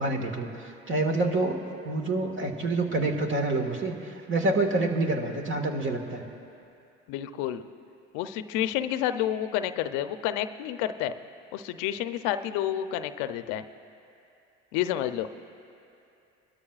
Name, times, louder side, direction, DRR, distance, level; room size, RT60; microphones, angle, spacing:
voice 1, 0.0-6.2, right 2 dB, 40° right, 3 dB, 1.8 m, -27 dB
voice 2, 7.1-7.6 8.1-11.1 11.5-13.6 14.7-15.3, left 11 dB, 70° left, 10 dB, 0.7 m, -29 dB
25.0 x 13.0 x 2.4 m, 2.7 s
supercardioid pair, 80°, 32 cm